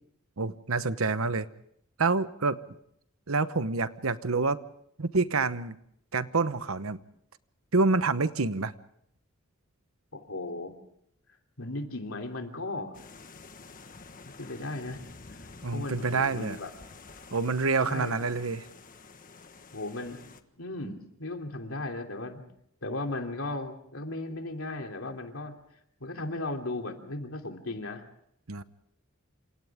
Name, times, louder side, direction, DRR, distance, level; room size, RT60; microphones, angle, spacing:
voice 1, 0.4-1.5 2.0-2.6 3.3-4.6 5.0-5.8 6.1-7.0 7.7-8.7 15.6-16.6 17.3-18.7 28.5-28.6, right 3 dB, 90° right, 13 dB, 1.1 m, -27 dB
voice 2, 10.1-10.7 11.6-13.0 14.4-15.0 15.7-16.7 17.8-18.2 19.7-22.4 22.8-25.5 26.0-28.0, left 2 dB, 75° left, 4 dB, 3.1 m, -36 dB
sound 1, 12.9-20.4, left 4 dB, 40° left, 1.4 m, -49 dB
28.0 x 27.0 x 3.6 m, 0.71 s
head